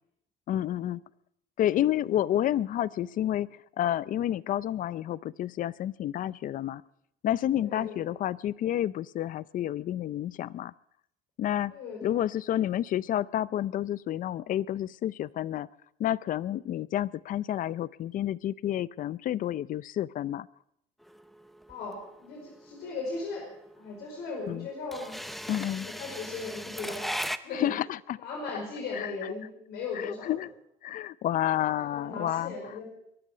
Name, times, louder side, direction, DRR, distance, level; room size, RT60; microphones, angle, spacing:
voice 1, 0.5-1.0 1.6-3.5 3.8-6.8 7.2-10.7 11.4-11.7 12.0-15.7 16.0-20.5 24.5-24.7 25.5-25.9 27.5-28.2 29.0-29.3 30.0-30.5 30.8-32.5, left 12 dB, 55° left, 20 dB, 0.5 m, -30 dB
voice 2, 7.6-8.0 11.7-12.2 21.7-23.4 23.7-25.2 25.8-27.0 27.4-27.7 28.2-30.4 31.8-32.8, left 3 dB, 80° left, 0 dB, 5.0 m, -38 dB
sound 1, 21.1-27.4, equal, ahead, 0.6 m, -37 dB
22.5 x 12.0 x 5.0 m, 0.76 s
cardioid pair, 110°, 17 cm